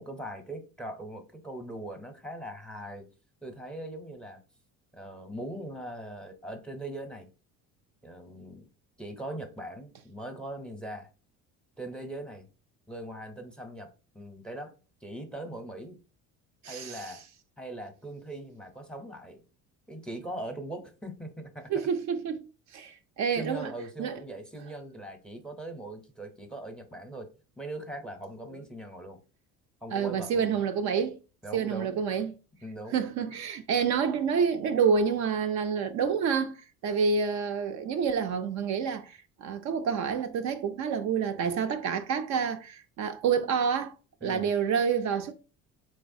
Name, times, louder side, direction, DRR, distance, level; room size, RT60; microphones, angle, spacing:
voice 1, 0.0-3.1 3.4-4.4 4.9-7.3 8.0-8.7 9.0-11.1 11.8-12.5 12.9-14.7 15.0-16.0 16.7-17.2 17.6-19.4 19.9-21.9 23.3-27.3 27.6-29.2 29.8-30.5 31.4-32.0 32.6-33.0 44.2-44.5, right 1 dB, 5° left, 0.6 m, -40 dB
voice 2, 16.6-17.2 21.7-23.7 24.0-24.1 29.9-31.2 31.5-32.3 32.9-36.6 36.8-43.9 44.2-45.3, right 6 dB, 55° right, 0.4 m, -28 dB
3.8 x 3.2 x 2.6 m
supercardioid pair, 95°, 33 cm